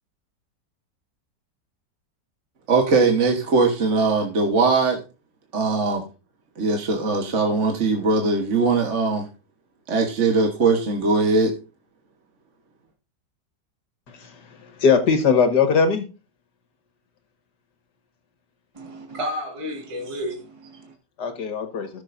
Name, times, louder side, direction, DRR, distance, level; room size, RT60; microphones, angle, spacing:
voice 1, 2.7-5.0 5.5-6.0 6.6-9.3 9.9-11.5, right 3 dB, 45° right, 1.5 m, -20 dB
voice 2, 14.6-16.1 21.2-21.9, left 5 dB, 75° left, 1.9 m, -20 dB
voice 3, 18.7-20.9, equal, 20° right, 1.8 m, -32 dB
18.0 x 6.7 x 2.6 m
omnidirectional pair, 1.8 m